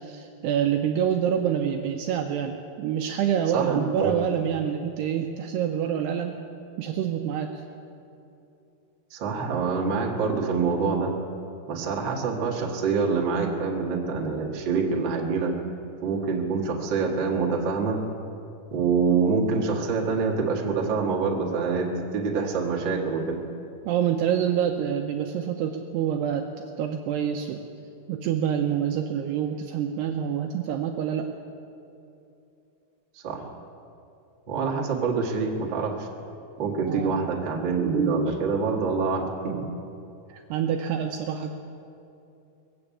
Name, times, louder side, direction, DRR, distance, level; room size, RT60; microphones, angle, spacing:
voice 1, 0.0-6.4 6.8-7.6 23.9-27.6 28.1-31.3 36.8-37.2 40.3-41.5, right 9 dB, 85° right, 4 dB, 2.4 m, -27 dB
voice 2, 3.5-4.1 9.1-11.2 11.7-15.6 16.0-18.0 18.7-23.4 33.1-33.5 34.5-36.1 36.6-39.7, right 4 dB, 70° right, -2 dB, 1.1 m, -26 dB
21.5 x 7.8 x 8.5 m, 2.7 s
omnidirectional pair, 5.4 m